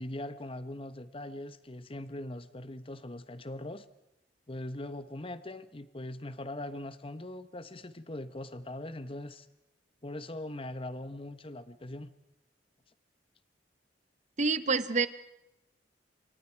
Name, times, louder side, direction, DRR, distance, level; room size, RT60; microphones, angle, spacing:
voice 1, 0.0-3.8 4.5-9.5 10.0-12.1, left 1 dB, 30° left, 13 dB, 1.1 m, -41 dB
voice 2, 14.4-15.1, right 4 dB, 40° right, 14 dB, 1.1 m, -27 dB
28.0 x 25.0 x 4.6 m, 0.88 s
head